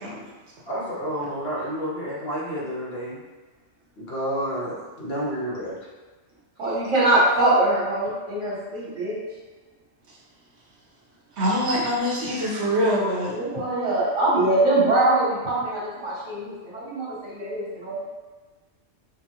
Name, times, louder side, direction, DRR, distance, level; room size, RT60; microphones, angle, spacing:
voice 1, 0.7-3.2 4.0-5.7, equal, 55° left, -6 dB, 1.2 m, -30 dB
voice 2, 6.6-9.2 13.3-18.0, right 2 dB, 85° right, -6 dB, 1.6 m, -23 dB
voice 3, 11.4-13.4, equal, 65° right, -3 dB, 1.0 m, -24 dB
5.2 x 2.1 x 2.8 m, 1.3 s
omnidirectional pair, 1.3 m